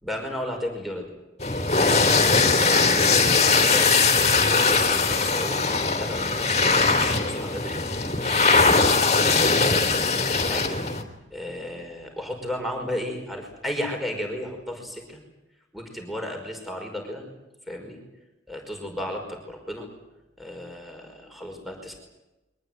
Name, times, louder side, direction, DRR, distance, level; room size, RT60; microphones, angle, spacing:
voice 1, 0.0-1.1 2.4-7.8 8.5-9.0 9.6-10.1 10.5-10.9 11.3-15.2 15.7-17.2 17.7-18.0 18.5-19.9 20.4-21.9, left 1 dB, ahead, 3 dB, 5.2 m, -34 dB
sound 1, 1.4-11.0, left 4 dB, 35° left, 3.1 m, -20 dB
23.5 x 19.5 x 9.5 m, 0.99 s
head